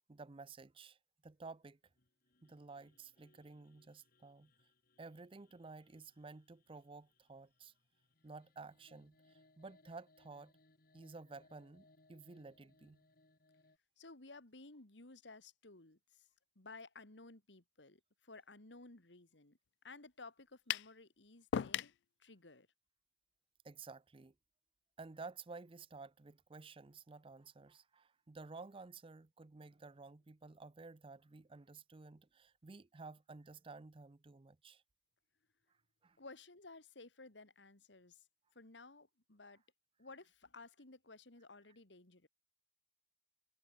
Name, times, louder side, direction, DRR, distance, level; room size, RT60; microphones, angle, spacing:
voice 1, 0.1-1.8 2.4-4.5 5.0-7.7 8.2-10.5 10.9-13.0 23.6-24.3 25.0-34.8 36.0-36.2, right 3 dB, 30° right, 0.6 m, -53 dB
sound 1, 1.9-13.8, left 2 dB, 55° left, 3.6 m, -72 dB
voice 2, 14.0-16.3 16.6-19.6 19.8-21.9 22.2-22.7 36.2-38.3 38.5-39.6 40.0-42.3, left 3 dB, 90° left, 2.6 m, -56 dB
sound 2, 20.7-20.9 21.5-22.0, left 9 dB, 70° left, 0.3 m, -36 dB
head